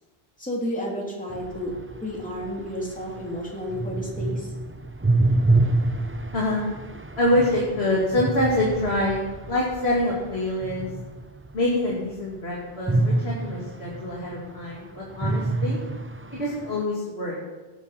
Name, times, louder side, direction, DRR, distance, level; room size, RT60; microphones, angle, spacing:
voice 1, 0.4-1.7 2.0-4.5, equal, 5° left, -3 dB, 3.0 m, -31 dB
sound 1, 1.3-11.5 12.9-14.8 15.1-16.8, right 2 dB, 15° right, 0.5 m, -27 dB
voice 2, 6.3-6.6 7.2-9.2 9.5-10.9 11.5-15.8 16.3-17.4, left 1 dB, 90° left, -4 dB, 2.8 m, -25 dB
17.5 x 8.8 x 5.8 m, 1.2 s
omnidirectional pair, 1.0 m